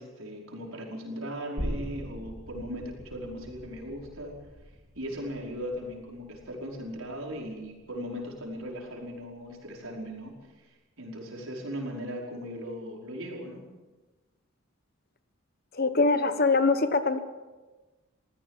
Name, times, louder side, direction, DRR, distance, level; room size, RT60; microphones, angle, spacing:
voice 1, 0.0-4.4 4.9-10.7 11.0-13.7, equal, 80° right, 0 dB, 5.1 m, -38 dB
sound 1, 1.6-8.9 9.2-9.3, equal, 60° right, 4.7 m, -41 dB
voice 2, 15.7-17.2, left 3 dB, 45° left, 10 dB, 1.3 m, -23 dB
22.0 x 16.0 x 7.5 m, 1.2 s
head